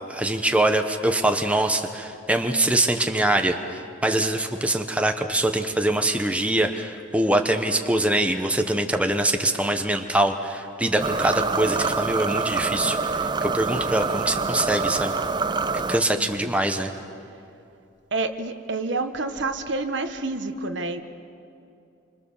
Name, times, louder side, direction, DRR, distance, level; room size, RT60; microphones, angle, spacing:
voice 1, 0.1-15.1 15.9-16.9, right 1 dB, 5° right, 5 dB, 1.0 m, -23 dB
sound 1, 11.0-16.0, right 4 dB, 20° right, 0.5 m, -26 dB
voice 2, 18.1-21.0, right 3 dB, 60° right, 7 dB, 1.3 m, -28 dB
28.5 x 25.0 x 7.2 m, 2.6 s
head